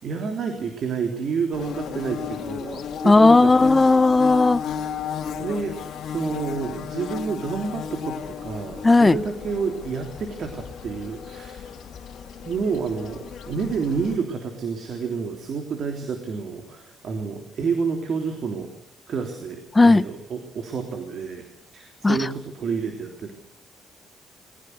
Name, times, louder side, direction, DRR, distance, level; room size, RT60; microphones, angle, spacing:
voice 1, 0.0-4.0 5.4-5.8 6.0-11.7 12.4-18.7 19.1-21.4 21.7-23.3, right 5 dB, 60° right, 3.4 m, -29 dB
Bird / Buzz, 1.5-14.2, left 7 dB, 70° left, 2.5 m, -34 dB
voice 2, 3.0-4.6 8.8-9.2 19.7-20.0 22.0-22.2, left 3 dB, 20° left, 0.8 m, -15 dB
21.5 x 18.0 x 9.6 m
cardioid pair, 90°, 0 cm